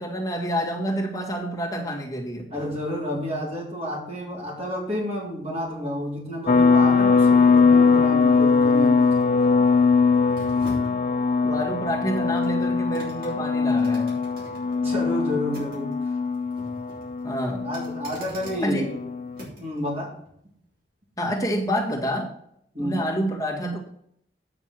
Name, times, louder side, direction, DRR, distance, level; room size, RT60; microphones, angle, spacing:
voice 1, 0.0-2.5 11.4-14.1 17.2-17.7 18.6-18.9 21.2-22.3 22.8-23.8, equal, 20° left, -1 dB, 2.0 m, -28 dB
voice 2, 2.5-9.1 14.8-15.9 17.6-19.0 19.6-20.1 22.7-23.0, equal, 35° right, -3 dB, 3.9 m, -30 dB
sound 1, 5.1-19.8 20.2-20.4, equal, 55° right, 5.0 m, -46 dB
sound 2, 6.5-19.4, left 4 dB, 40° left, 0.4 m, -21 dB
9.3 x 6.0 x 6.1 m, 0.69 s
head